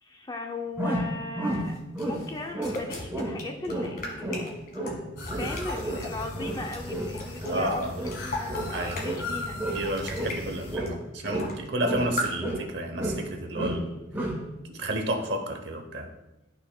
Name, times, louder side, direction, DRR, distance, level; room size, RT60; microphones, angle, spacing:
voice 1, 0.0-1.8 2.0-4.6 5.2-9.6 10.5-10.7, left 2 dB, 20° left, 3 dB, 0.6 m, -37 dB
sound 1, 0.8-2.3 2.5-2.9 3.1-3.4 3.7-9.3 9.6-10.4 10.7-12.1 12.4-13.3 13.5-13.9 14.1-14.4, right 1 dB, 10° right, 1.2 m, -32 dB
sound 2, 1.5-6.2 6.6-9.2 9.6-10.4 10.8-10.9 11.2-11.7 12.0-12.3, left 1 dB, 45° left, 1.6 m, -37 dB
sound 3, 5.2-10.8, left 2 dB, 65° left, 2.0 m, -38 dB
voice 2, 7.5-7.9 8.7-9.0 9.7-13.9 14.7-16.1, right 1 dB, 55° right, 4 dB, 1.0 m, -31 dB
12.0 x 5.6 x 2.3 m, 1.0 s
head